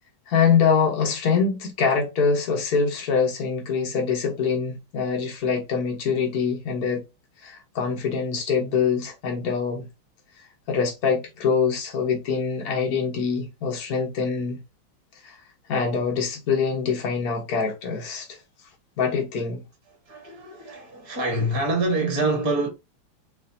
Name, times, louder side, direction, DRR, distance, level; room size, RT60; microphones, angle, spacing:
voice 1, 0.3-7.0 7.4-9.9 10.7-14.6 15.2-15.4 15.7-18.4 19.0-19.6, left 5 dB, 50° left, 1.7 m, -24 dB
voice 2, 19.9-22.7, right 2 dB, 15° right, 1.1 m, -26 dB
5.5 x 2.7 x 2.8 m
omnidirectional pair, 2.2 m